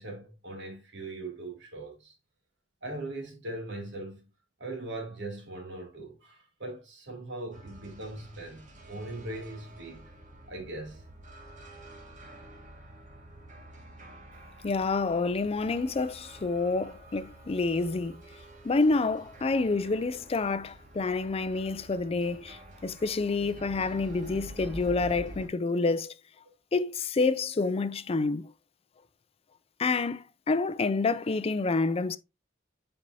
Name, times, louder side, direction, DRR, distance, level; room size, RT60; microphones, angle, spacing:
voice 1, 0.0-2.1 2.8-4.2 4.6-10.0 10.5-11.0, right 2 dB, 65° right, 2.7 m, -40 dB
sound 1, 7.5-25.5, equal, 40° right, 1.9 m, -48 dB
voice 2, 14.6-18.2 18.6-26.1 26.7-28.5 29.8-32.2, left 3 dB, 30° left, 0.4 m, -28 dB
7.8 x 5.3 x 2.7 m
head